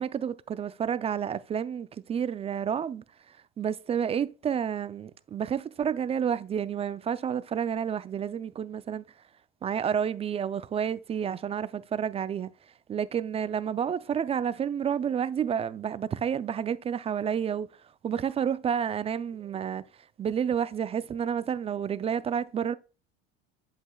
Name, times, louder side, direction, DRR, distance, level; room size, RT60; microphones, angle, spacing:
voice 1, 0.0-3.0 3.6-9.0 9.6-12.5 12.9-17.7 18.0-19.8 20.2-22.7, right 8 dB, 20° right, 0.3 m, -30 dB
8.2 x 7.5 x 2.2 m
hypercardioid pair, 85°, 32 cm